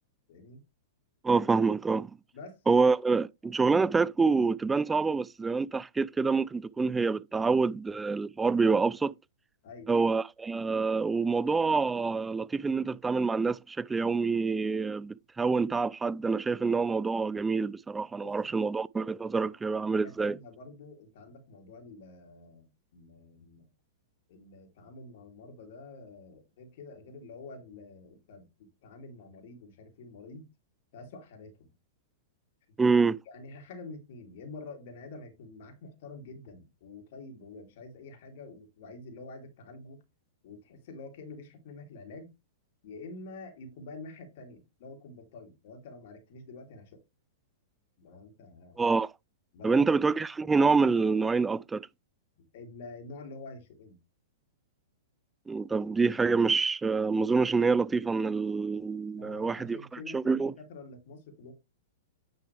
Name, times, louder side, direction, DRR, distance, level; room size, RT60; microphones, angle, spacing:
voice 1, 0.3-0.6 2.3-2.8 9.6-9.9 18.2-18.3 19.9-23.7 24.3-30.5 30.9-31.7 32.9-33.0 33.3-40.0 40.4-42.3 42.8-47.0 48.0-48.8 49.5-49.9 52.4-54.0 59.1-61.5, left 3 dB, 55° left, 3.1 m, -47 dB
voice 2, 1.2-2.2 2.7-9.1 9.9-20.4 32.8-33.1 48.8-49.1 49.6-51.9 55.5-60.5, right 4 dB, 10° right, 0.3 m, -27 dB
9.7 x 6.6 x 3.4 m
figure-of-eight pair, 110°, 0 cm